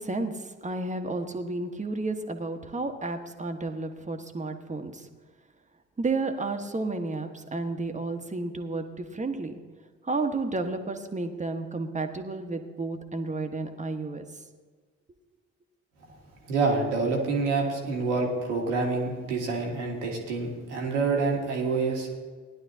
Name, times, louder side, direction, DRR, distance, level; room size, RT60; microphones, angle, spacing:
voice 1, 0.0-5.1 6.0-9.5 10.0-14.3, right 3 dB, 20° right, 6 dB, 1.4 m, -32 dB
voice 2, 16.5-22.1, right 4 dB, 80° right, 0 dB, 1.9 m, -27 dB
19.0 x 11.0 x 2.8 m, 1.4 s
figure-of-eight pair, 40°, 35 cm